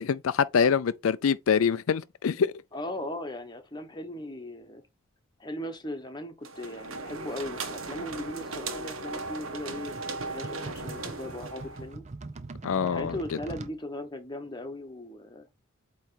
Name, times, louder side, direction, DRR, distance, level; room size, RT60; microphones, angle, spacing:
voice 1, 0.0-2.5 12.6-13.1, left 6 dB, 80° left, 0.4 m, -25 dB
voice 2, 2.7-4.8 5.4-12.0 12.8-15.5, left 1 dB, 20° left, 1.1 m, -38 dB
sound 1, 6.4-11.9, right 3 dB, 80° right, 1.4 m, -37 dB
sound 2, 8.5-13.8, right 3 dB, 35° right, 0.6 m, -43 dB
8.4 x 3.1 x 4.7 m
head